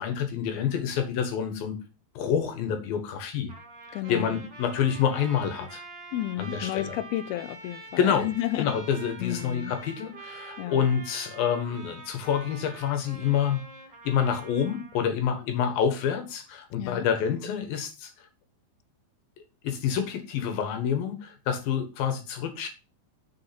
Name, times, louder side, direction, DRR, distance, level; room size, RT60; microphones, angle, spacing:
voice 1, 0.0-1.8 2.2-3.5 3.9-5.8 6.4-7.0 8.0-8.3 8.6-13.6 14.0-18.1 19.6-22.7, left 8 dB, 65° left, 2.9 m, -27 dB
Trumpet, 3.5-15.1, right 3 dB, 30° right, 2.8 m, -45 dB
voice 2, 3.9-4.4 6.1-8.8 9.2-9.7 10.6-10.9 16.8-17.1, left 15 dB, 85° left, 2.2 m, -32 dB
7.3 x 6.4 x 5.9 m
omnidirectional pair, 4.9 m